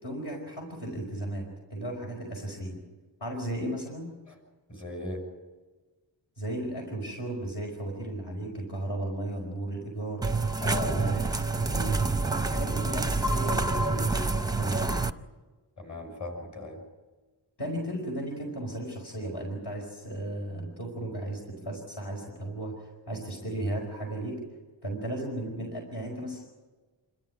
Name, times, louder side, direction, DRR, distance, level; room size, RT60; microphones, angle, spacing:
voice 1, 0.0-2.8 3.2-4.1 6.4-10.3 10.8-12.0 12.4-15.0 17.6-24.4 24.8-26.5, right 1 dB, 60° left, -1 dB, 4.7 m, -35 dB
voice 2, 4.7-5.2 10.6-11.2 15.8-16.8, left 3 dB, 40° left, 2 dB, 6.2 m, -37 dB
sound 1, 10.2-15.1, right 3 dB, 10° right, 0.6 m, -27 dB
27.0 x 13.5 x 9.7 m, 1.3 s
wide cardioid pair, 125°, 45 cm